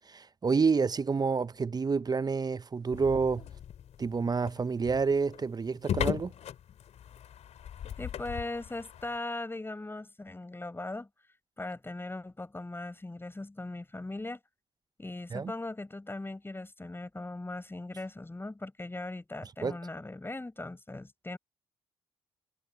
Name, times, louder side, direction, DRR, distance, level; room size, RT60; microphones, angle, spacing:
voice 1, 0.1-3.5 4.0-6.3 15.3-15.5 19.6-19.8, right 5 dB, 30° right, 0.9 m, -28 dB
sound 1, 2.9-9.2, left 9 dB, 55° left, 3.2 m, -38 dB
voice 2, 8.0-11.1 11.6-14.4 15.0-21.4, left 2 dB, 15° left, 5.2 m, -39 dB
hypercardioid pair, 45°, 13 cm